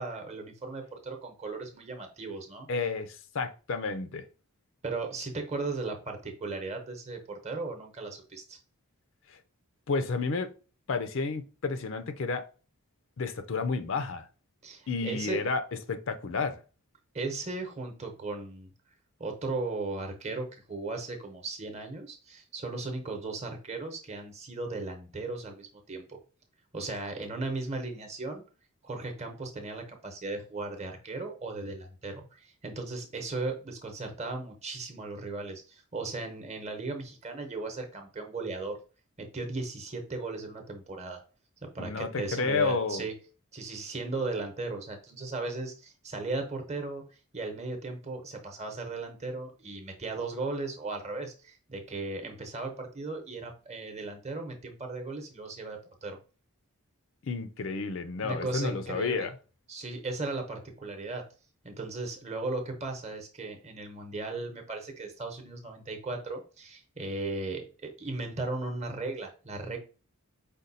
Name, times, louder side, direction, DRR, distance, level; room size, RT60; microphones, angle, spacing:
voice 1, 0.0-2.7 4.8-8.6 14.6-15.4 17.1-18.7 19.2-26.2 26.7-28.4 28.8-38.8 39.2-41.2 41.6-43.1 43.5-47.0 47.3-56.2 58.2-59.3 59.7-61.2 61.6-69.8, right 3 dB, 30° right, 0.9 m, -36 dB
voice 2, 2.7-4.3 9.3-9.4 9.9-10.5 10.9-12.5 13.2-14.3 14.9-15.6 15.9-16.6 41.8-43.1 57.2-59.3, left 4 dB, 55° left, 0.5 m, -31 dB
5.1 x 2.3 x 4.0 m
head